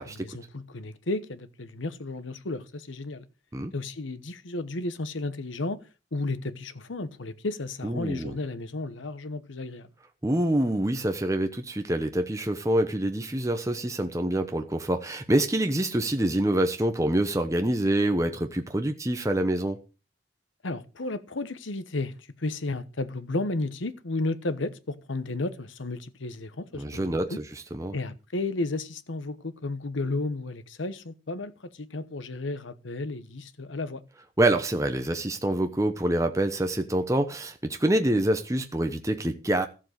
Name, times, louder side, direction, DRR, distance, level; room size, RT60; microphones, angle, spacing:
voice 1, 0.0-3.2 3.7-5.8 6.1-9.9 20.6-22.1 22.4-27.4 27.9-34.0, left 2 dB, 80° left, 1.1 m, -33 dB
voice 2, 7.8-8.3 10.2-19.8 26.8-27.9 34.4-39.7, right 1 dB, 15° right, 0.9 m, -26 dB
14.5 x 7.6 x 6.4 m
head